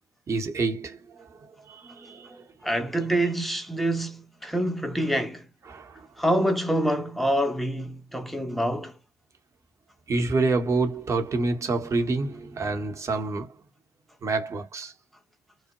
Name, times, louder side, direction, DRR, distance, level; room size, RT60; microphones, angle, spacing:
voice 1, 0.3-2.5 5.7-6.1 10.1-13.6 14.2-14.9, right 3 dB, 35° right, 1.0 m, -28 dB
voice 2, 2.6-5.5 6.2-8.9, right 1 dB, ahead, 0.6 m, -26 dB
2.1 x 2.1 x 2.9 m
hypercardioid pair, 55°, 9 cm